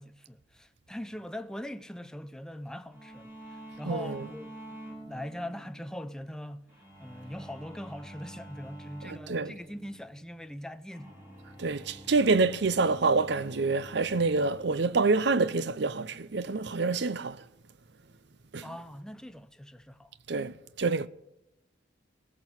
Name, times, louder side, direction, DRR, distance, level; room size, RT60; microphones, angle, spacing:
voice 1, 0.0-6.7 7.0-11.2 18.6-20.1, left 1 dB, 5° left, 0.6 m, -42 dB
sound 1, 2.9-17.4, right 1 dB, 10° right, 4.3 m, -49 dB
voice 2, 3.8-4.3 9.0-9.6 11.6-17.4 18.5-18.6 20.3-21.1, right 3 dB, 65° right, 0.7 m, -27 dB
19.0 x 6.3 x 8.8 m
head